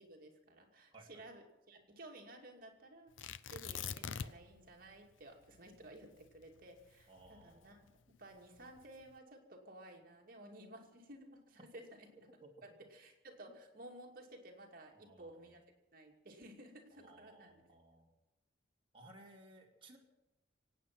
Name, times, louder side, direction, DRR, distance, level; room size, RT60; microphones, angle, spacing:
voice 1, 0.0-12.1 12.9-15.6 15.9-17.6, right 1 dB, 50° right, 1 dB, 2.5 m, -55 dB
voice 2, 0.9-1.2 7.1-7.9 12.4-12.5 14.9-15.5 16.9-18.1 18.9-20.0, right 2 dB, 30° right, -1 dB, 2.6 m, -60 dB
Tearing, 3.2-4.6 4.9-5.0 5.5-7.9 8.6-9.0, left 7 dB, 90° left, 0.6 m, -44 dB
25.5 x 9.1 x 6.0 m, 0.95 s
head